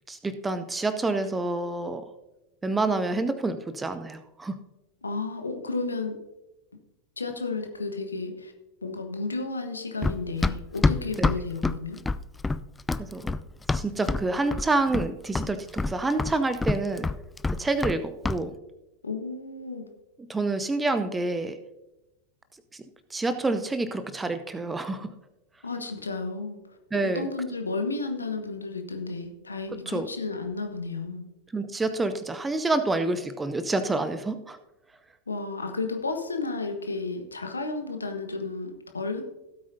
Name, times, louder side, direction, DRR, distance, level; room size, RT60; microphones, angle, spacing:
voice 1, 0.1-2.0 2.6-4.6 11.2-11.3 13.0-13.3 13.7-17.1 17.6-18.6 20.3-21.6 22.7-22.8 23.1-25.1 26.9-27.3 29.9-30.1 31.5-34.6, right 2 dB, 10° right, 10 dB, 0.7 m, -28 dB
voice 2, 5.0-6.1 7.2-8.5 8.8-12.0 19.0-19.9 25.6-26.8 27.1-31.2 35.3-39.2, left 3 dB, 75° left, 5 dB, 1.3 m, -32 dB
Run, 10.0-14.3 14.5-15.1 15.4-18.0 18.2-18.4, left 3 dB, 10° left, 0.3 m, -26 dB
16.0 x 8.6 x 2.7 m, 0.97 s
figure-of-eight pair, 90°, 0 cm